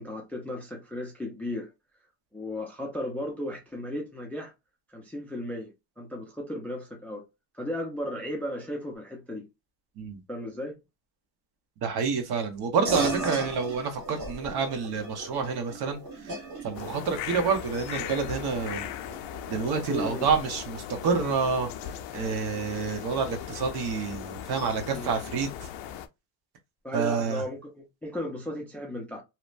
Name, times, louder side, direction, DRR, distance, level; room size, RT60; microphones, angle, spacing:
voice 1, 0.0-1.7 2.3-4.5 4.9-7.2 7.5-9.5 10.3-10.8 19.9-20.3 24.9-25.2 26.8-29.2, left 1 dB, 5° left, 0.4 m, -35 dB
voice 2, 11.8-16.3 16.6-18.9 19.5-25.7 26.9-27.4, right 5 dB, 55° right, 0.9 m, -28 dB
sound 1, 12.8-22.7, right 2 dB, 40° right, 1.3 m, -38 dB
sound 2, 16.7-26.1, left 10 dB, 70° left, 0.5 m, -38 dB
2.8 x 2.1 x 2.4 m
cardioid pair, 130°, 46 cm